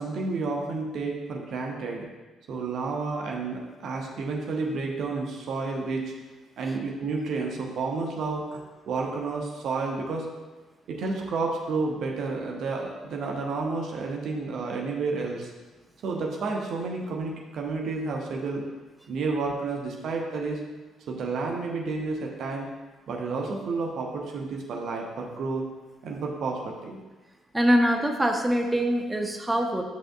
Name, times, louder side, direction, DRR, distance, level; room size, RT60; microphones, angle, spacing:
voice 1, 0.0-2.1 2.5-6.1 6.6-10.3 10.9-15.5 16.0-18.7 19.1-20.6 21.1-22.7 23.1-25.7 26.0-27.0, right 3 dB, 55° right, 0 dB, 1.1 m, -30 dB
voice 2, 27.5-29.8, equal, 15° right, 3 dB, 0.9 m, -23 dB
10.5 x 6.2 x 2.5 m, 1.2 s
figure-of-eight pair, 45°, 0 cm